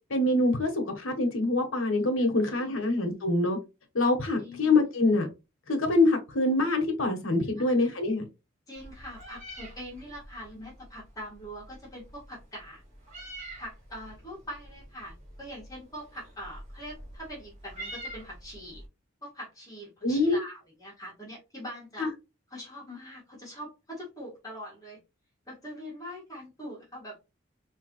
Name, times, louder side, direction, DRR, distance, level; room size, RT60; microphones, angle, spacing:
voice 1, 0.1-3.6 3.9-5.3 5.7-8.3 20.0-20.4 22.0-22.1, left 2 dB, 75° left, 1.4 m, -25 dB
voice 2, 2.4-2.7 4.4-4.7 7.4-7.7 8.7-12.8 13.6-18.8 19.2-22.1 22.5-25.0 25.5-27.2, equal, 15° left, 2.0 m, -43 dB
Meow, 8.7-18.9, right 1 dB, 35° right, 2.7 m, -46 dB
4.7 x 3.3 x 3.2 m
head